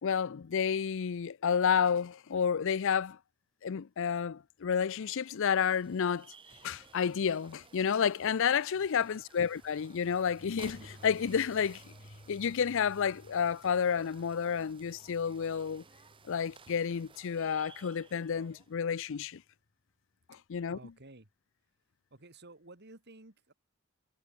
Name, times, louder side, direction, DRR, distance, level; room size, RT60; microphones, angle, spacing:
voice 1, 0.0-3.2 3.6-6.3 6.6-11.9 12.3-15.8 16.3-19.4 20.5-20.8, left 7 dB, 65° left, 0.5 m, -30 dB
sound 1, 4.7-18.8, right 5 dB, 25° right, 0.9 m, -57 dB
voice 2, 8.7-9.2 20.7-21.3 22.1-23.5, right 2 dB, 50° right, 2.9 m, -54 dB
sound 2, 9.5-19.3, left 1 dB, 45° left, 3.1 m, -57 dB
head